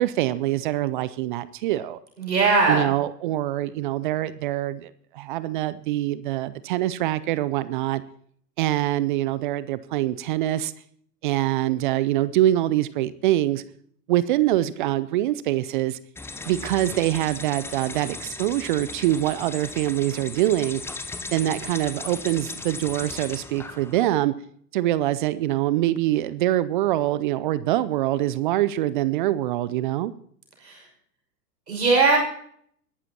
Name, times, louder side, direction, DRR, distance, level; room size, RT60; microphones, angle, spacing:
voice 1, 0.0-2.0 2.7-8.0 8.6-10.7 11.2-13.6 14.1-16.0 16.5-20.8 21.3-24.3 24.7-30.1, right 14 dB, 30° right, 16 dB, 0.5 m, -24 dB
voice 2, 2.2-2.9 30.6-30.9 31.7-32.2, right 3 dB, 80° right, 0 dB, 5.9 m, -20 dB
sound 1, 16.2-24.1, left 3 dB, 5° left, 0.7 m, -37 dB
21.5 x 12.0 x 2.9 m, 0.62 s
figure-of-eight pair, 105°, 49 cm